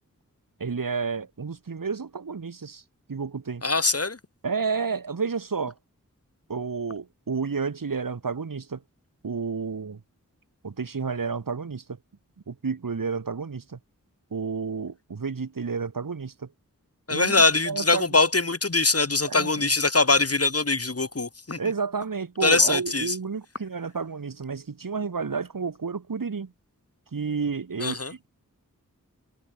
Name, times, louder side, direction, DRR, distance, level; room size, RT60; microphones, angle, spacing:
voice 1, 0.6-2.8 3.1-3.6 4.4-5.7 6.5-8.8 9.2-10.0 10.6-12.0 12.5-13.8 14.3-16.5 17.1-18.0 19.2-19.7 21.6-26.5 27.1-28.3, right 5 dB, 75° right, 2.3 m, -31 dB
voice 2, 3.6-4.2 17.1-21.6 22.4-23.1 27.8-28.1, left 3 dB, 45° left, 3.4 m, -22 dB
cardioid pair, 45°, 33 cm